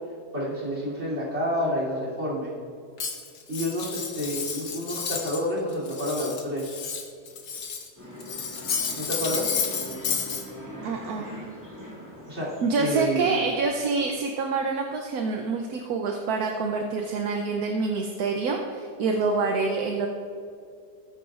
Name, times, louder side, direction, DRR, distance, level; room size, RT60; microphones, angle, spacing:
voice 1, 0.3-2.5 3.5-6.8 9.0-9.6 12.3-13.4, equal, 40° right, -5 dB, 3.5 m, -29 dB
Cutlery silverware, 3.0-5.5 5.7-7.9 8.2-10.4, left 6 dB, 75° left, 1.6 m, -31 dB
sound 1, 8.0-13.6, right 1 dB, 10° right, 2.8 m, -41 dB
voice 2, 10.8-11.3 12.6-20.1, right 4 dB, 70° right, 2 dB, 1.3 m, -27 dB
20.0 x 9.0 x 2.5 m, 2.4 s
omnidirectional pair, 1.7 m